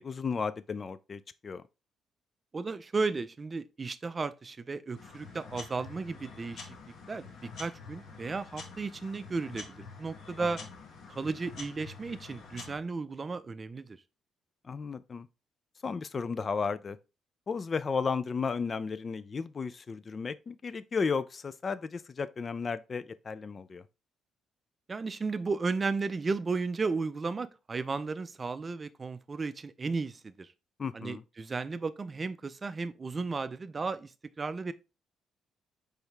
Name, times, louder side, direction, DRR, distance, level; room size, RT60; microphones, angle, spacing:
voice 1, 0.0-1.6 10.4-10.6 14.6-15.3 15.8-17.0 17.5-23.8 30.8-31.2, left 5 dB, 40° left, 0.4 m, -34 dB
voice 2, 2.5-6.8 7.1-7.3 7.6-10.6 11.1-14.0 24.9-30.5 30.9-34.1 34.4-34.7, right 4 dB, 30° right, 0.4 m, -34 dB
sound 1, 4.9-12.8, left 4 dB, 70° left, 1.2 m, -47 dB
4.5 x 3.4 x 3.4 m
cardioid pair, 90°, 0 cm